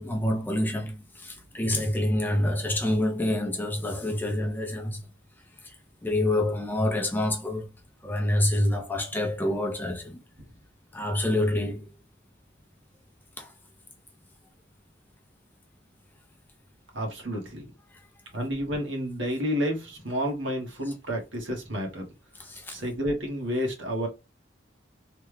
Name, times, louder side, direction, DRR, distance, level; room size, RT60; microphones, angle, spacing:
voice 1, 0.0-5.0 5.6-5.7 6.0-7.7 8.0-10.2 10.9-11.9 13.4-13.5 20.9-21.0 22.4-22.8, left 1 dB, 10° left, 0.5 m, -27 dB
voice 2, 16.9-17.7 18.3-22.1 22.7-24.1, equal, 70° right, 1.4 m, -30 dB
3.3 x 2.3 x 3.2 m
head